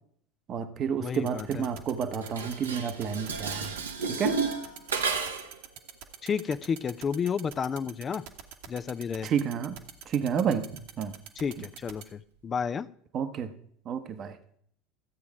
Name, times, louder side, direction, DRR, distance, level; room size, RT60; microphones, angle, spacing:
voice 1, 0.5-3.8 4.0-4.4 9.2-9.8 10.0-11.2 11.6-11.7 13.1-13.5 13.8-14.4, right 7 dB, 40° right, 10 dB, 0.9 m, -30 dB
voice 2, 1.0-1.6 6.2-8.2 8.7-9.3 11.4-12.9, left 6 dB, 30° left, 14 dB, 0.4 m, -31 dB
sound 1, 1.1-12.0, right 10 dB, 60° right, 1.2 m, -44 dB
Dishes pots and pans, 2.2-5.6, right 4 dB, 85° right, 1.0 m, -32 dB
13.5 x 8.1 x 4.8 m, 0.65 s
figure-of-eight pair, 75°, 0 cm